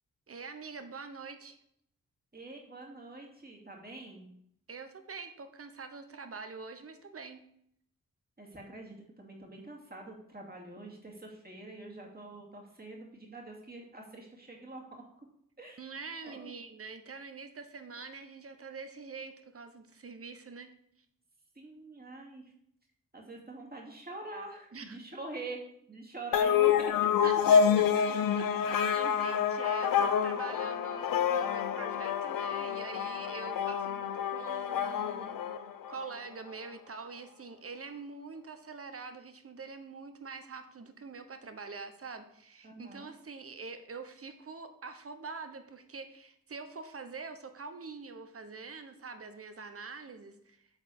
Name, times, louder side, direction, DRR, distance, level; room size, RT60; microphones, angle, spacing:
voice 1, 0.3-1.6 4.7-7.4 15.8-20.7 24.7-25.0 27.2-28.1 28.7-35.4 35.9-50.7, right 4 dB, 45° right, 8 dB, 1.1 m, -45 dB
voice 2, 2.3-4.3 8.4-15.3 15.6-15.8 16.2-16.5 21.5-22.4 23.1-25.6 25.9-26.9 27.2-27.3 27.9-28.0 28.3-28.4 42.6-43.1, right 2 dB, 30° right, 0 dB, 2.5 m, -45 dB
sound 1, 26.3-36.1, left 8 dB, 80° left, 0.6 m, -28 dB
8.0 x 4.2 x 6.8 m, 0.70 s
cardioid pair, 45°, 33 cm